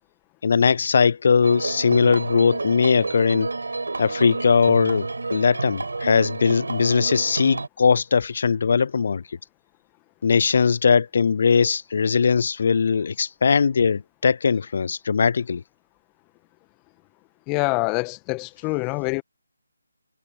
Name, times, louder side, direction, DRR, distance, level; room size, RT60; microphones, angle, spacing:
voice 1, 0.4-3.5 4.0-9.2 10.2-15.6, left 5 dB, 50° left, 0.3 m, -20 dB
sound 1, 1.4-7.7, right 3 dB, 70° right, 5.3 m, -29 dB
voice 2, 17.5-19.2, left 28 dB, 15° left, 1.4 m, -25 dB
figure-of-eight pair, 155°, 0 cm